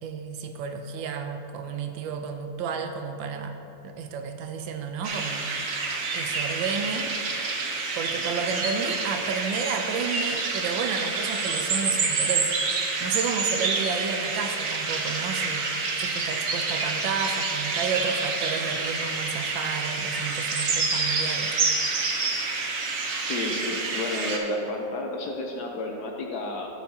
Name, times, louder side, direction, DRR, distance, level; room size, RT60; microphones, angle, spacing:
voice 1, 0.0-3.6 3.8-5.5 6.1-7.1 7.9-12.5 13.0-21.5, right 5 dB, 80° right, 6 dB, 1.3 m, -31 dB
sound 1, 5.0-24.4, right 4 dB, 55° right, 1.0 m, -28 dB
voice 2, 23.2-26.7, left 2 dB, 65° left, 1 dB, 1.1 m, -31 dB
10.5 x 8.2 x 2.7 m, 2.7 s
omnidirectional pair, 2.1 m